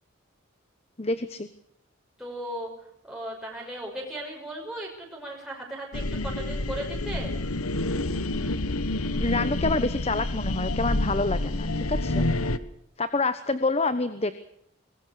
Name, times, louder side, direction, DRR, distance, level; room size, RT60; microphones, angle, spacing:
voice 1, 1.0-1.5 9.2-12.2 13.0-14.3, left 3 dB, 30° left, 12 dB, 1.0 m, -27 dB
voice 2, 2.2-2.7 3.0-7.4, right 1 dB, 5° right, -2 dB, 5.6 m, -36 dB
sound 1, 5.9-12.6, left 2 dB, 85° left, 1.4 m, -28 dB
24.0 x 20.5 x 6.6 m, 0.72 s
head